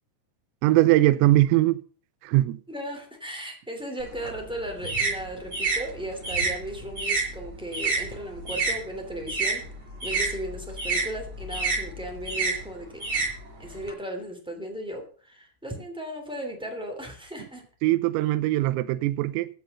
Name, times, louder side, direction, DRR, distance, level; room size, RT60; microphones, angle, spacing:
voice 1, 0.6-1.8 2.2-2.6 17.8-19.5, right 16 dB, 85° right, 3.4 m, -21 dB
voice 2, 2.7-9.7 10.0-13.0 13.6-17.6, equal, ahead, 1.2 m, -36 dB
sound 1, 4.0-8.8 9.1-13.9, right 3 dB, 30° right, 5.5 m, -29 dB
14.5 x 6.9 x 6.8 m
omnidirectional pair, 5.9 m